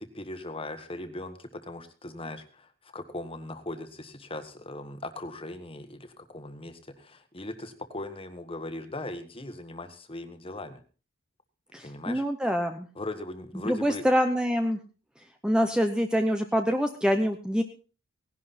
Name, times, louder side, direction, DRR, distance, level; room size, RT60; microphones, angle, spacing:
voice 1, 0.0-10.8 11.8-12.2 13.0-14.0, left 2 dB, 25° left, 9 dB, 1.5 m, -39 dB
voice 2, 11.7-12.9 13.6-14.8 15.4-17.6, equal, 5° right, 6 dB, 0.8 m, -25 dB
17.5 x 11.0 x 4.2 m, 0.36 s
head